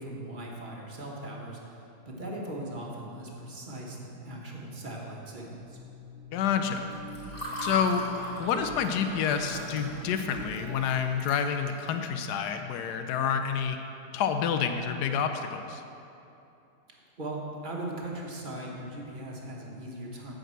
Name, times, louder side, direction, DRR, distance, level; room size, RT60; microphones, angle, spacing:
voice 1, 0.0-1.8 2.0-5.8 16.9-20.3, right 1 dB, 35° right, -2 dB, 1.3 m, -39 dB
sound 1, 5.5-11.2, equal, 85° right, 1.4 m, -44 dB
voice 2, 6.3-6.9 7.6-8.0 8.4-13.8 14.1-15.8, left 7 dB, 90° left, 7 dB, 1.2 m, -28 dB
Water / Fill (with liquid), 6.8-11.9, equal, 35° left, 2.7 m, -40 dB
8.6 x 5.3 x 7.5 m, 2.8 s
omnidirectional pair, 1.7 m